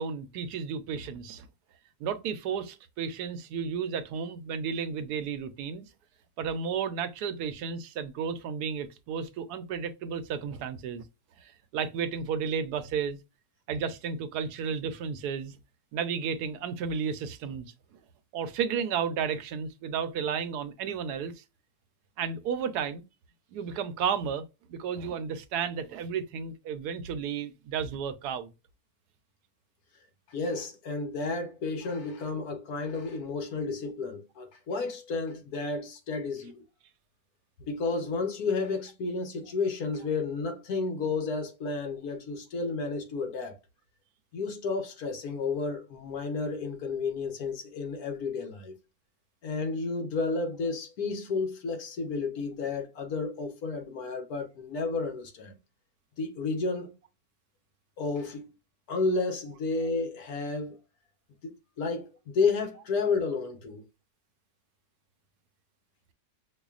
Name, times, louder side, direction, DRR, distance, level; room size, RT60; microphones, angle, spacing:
voice 1, 0.0-1.5 2.0-5.9 6.4-11.0 11.4-13.2 13.7-15.5 15.9-17.7 18.3-21.4 22.2-23.0 23.5-28.5, right 7 dB, 75° right, 1.1 m, -33 dB
voice 2, 30.3-36.6 37.7-43.6 44.3-48.7 49.4-55.5 56.2-56.9 58.0-58.5 58.9-60.8 61.4-63.8, left 4 dB, 65° left, 1.3 m, -31 dB
5.5 x 2.3 x 2.4 m
omnidirectional pair, 1.8 m